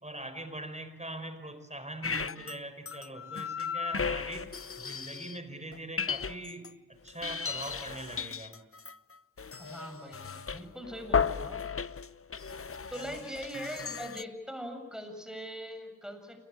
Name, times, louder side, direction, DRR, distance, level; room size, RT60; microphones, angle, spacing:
voice 1, 0.0-6.7 7.0-8.6 13.0-13.2, right 1 dB, 20° right, 9 dB, 5.3 m, -42 dB
sound 1, 2.0-2.6 2.9-5.4 5.7-6.7 7.1-14.2, left 6 dB, 40° left, 0.8 m, -35 dB
voice 2, 9.6-11.6 12.9-16.4, equal, ahead, 6 dB, 7.6 m, -41 dB
28.0 x 22.5 x 8.8 m, 1.1 s
cardioid pair, 45°, 33 cm